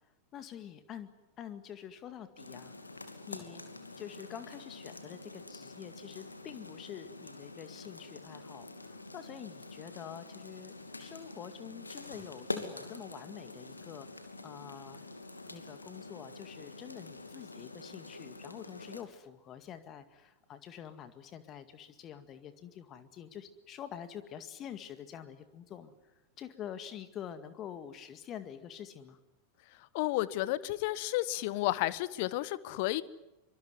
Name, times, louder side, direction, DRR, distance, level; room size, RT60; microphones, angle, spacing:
voice 1, 0.3-1.1 1.4-2.7 3.3-3.6 4.0-10.7 11.0-15.0 15.5-25.9 26.4-29.2, left 9 dB, 30° left, 10 dB, 2.0 m, -46 dB
sound 1, 2.4-19.0, left 2 dB, 80° left, 2.7 m, -46 dB
voice 2, 29.9-33.0, left 17 dB, 50° left, 18 dB, 1.2 m, -32 dB
24.5 x 24.5 x 9.6 m, 0.95 s
figure-of-eight pair, 90°, 0 cm